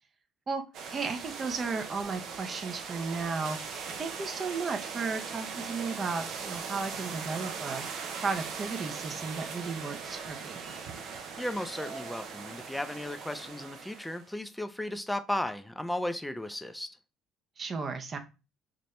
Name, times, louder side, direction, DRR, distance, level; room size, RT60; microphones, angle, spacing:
sound 1, 0.7-14.3, right 5 dB, 65° right, 0.8 m, -40 dB
voice 1, 0.9-7.8 8.2-10.6 17.6-18.2, right 4 dB, 40° right, 0.8 m, -34 dB
voice 2, 11.4-17.0, left 1 dB, 5° left, 0.5 m, -35 dB
4.2 x 3.2 x 3.2 m
supercardioid pair, 90°, 0 cm